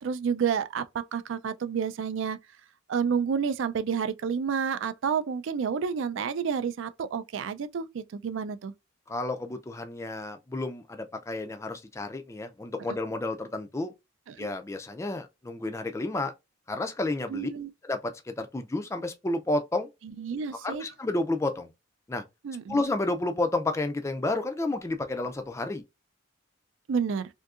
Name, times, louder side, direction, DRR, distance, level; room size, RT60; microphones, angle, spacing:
voice 1, 0.0-2.4 2.9-8.7 14.3-14.5 17.3-17.7 20.2-20.9 22.4-22.8 26.9-27.3, right 6 dB, 75° right, 0.4 m, -30 dB
voice 2, 9.1-13.9 14.4-16.3 16.7-17.5 17.8-19.9 20.5-21.7 22.1-22.2 22.7-25.8, left 2 dB, 15° left, 0.3 m, -31 dB
3.6 x 2.7 x 2.4 m
head